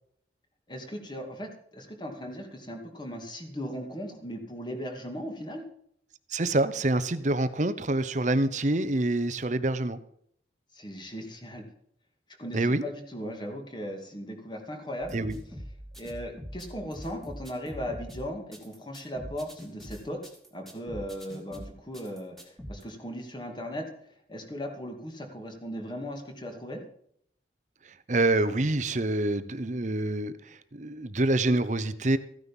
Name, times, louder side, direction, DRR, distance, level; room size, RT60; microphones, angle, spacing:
voice 1, 0.7-5.6 10.7-11.7 12.4-15.2 16.0-20.2 20.5-23.9 24.3-26.8, equal, 25° left, 4 dB, 2.5 m, -38 dB
voice 2, 6.3-10.0 12.5-12.8 15.1-15.4 28.1-32.2, right 2 dB, 45° right, 13 dB, 0.9 m, -26 dB
sound 1, 15.0-22.8, equal, ahead, 2.6 m, -43 dB
15.0 x 9.8 x 5.5 m, 0.69 s
head